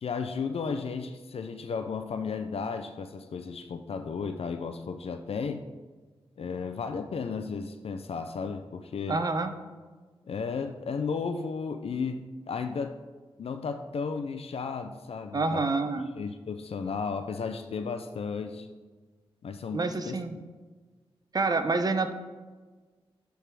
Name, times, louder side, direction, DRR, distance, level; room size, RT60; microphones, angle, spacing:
voice 1, 0.0-5.6 6.4-9.2 10.3-13.0 13.4-15.6 16.2-18.7 19.4-19.8 20.1-20.2, left 5 dB, 75° left, 8 dB, 0.5 m, -34 dB
voice 2, 9.1-9.5 15.3-16.1 19.7-20.4 21.3-22.1, right 3 dB, 40° right, 8 dB, 0.6 m, -27 dB
9.8 x 3.5 x 4.7 m, 1.4 s
wide cardioid pair, 70°, 10 cm